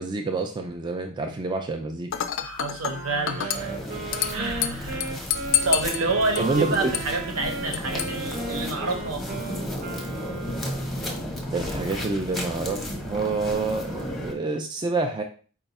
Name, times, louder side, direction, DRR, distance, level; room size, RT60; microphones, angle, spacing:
voice 1, 0.0-2.1 5.1-5.3 6.4-6.9 11.5-15.2, right 3 dB, 20° right, 3 dB, 0.3 m, -28 dB
Dishes pots and pans / Glass, 2.1-9.1, left 10 dB, 60° left, 0.4 m, -31 dB
voice 2, 2.4-3.7 4.3-5.2 5.6-9.3, right 3 dB, 70° right, 4 dB, 0.8 m, -28 dB
Wind instrument woodwind instrument, 2.9-11.1, right 2 dB, 35° right, 0.7 m, -36 dB
sound 1, 3.5-14.3, equal, ahead, 0.8 m, -34 dB
4.7 x 2.2 x 4.0 m, 0.39 s
head